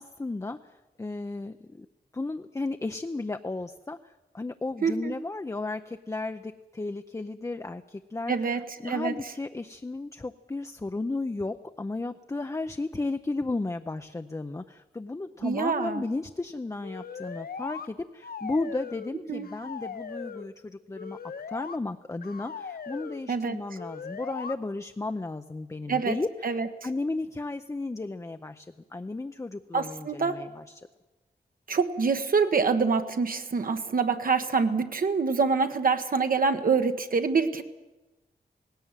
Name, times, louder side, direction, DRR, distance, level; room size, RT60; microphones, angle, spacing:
voice 1, 0.0-1.9 2.1-21.2 21.5-26.5 26.8-30.8, left 2 dB, 20° left, 7 dB, 0.6 m, -34 dB
voice 2, 4.8-5.1 8.3-9.1 15.4-16.0 19.3-19.5 23.3-23.6 25.9-26.2 26.4-26.7 29.7-30.4 31.7-37.6, right 5 dB, 65° right, 7 dB, 1.3 m, -26 dB
sound 1, 16.8-17.9 18.2-19.2 19.4-20.5 20.9-21.8 22.2-23.2 23.8-24.5, left 6 dB, 70° left, 1.0 m, -39 dB
18.5 x 17.0 x 9.0 m, 1.1 s
wide cardioid pair, 130°, 16 cm